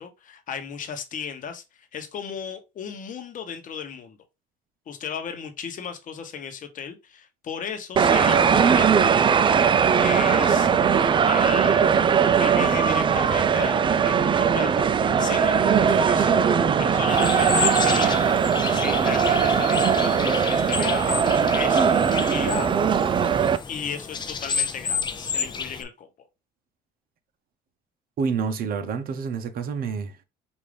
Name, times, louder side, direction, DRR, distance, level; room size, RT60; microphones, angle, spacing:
voice 1, 0.0-4.2 4.9-10.7 11.3-12.1 12.4-16.4 16.8-18.4 18.7-22.8 23.7-26.1, left 7 dB, 50° left, 1.0 m, -35 dB
sound 1, 8.0-23.6, right 7 dB, 30° right, 0.4 m, -20 dB
sound 2, 17.1-25.8, left 5 dB, 25° left, 0.6 m, -30 dB
voice 2, 28.2-30.2, right 5 dB, 60° right, 0.8 m, -28 dB
5.1 x 2.6 x 3.3 m
cardioid pair, 110°, 17 cm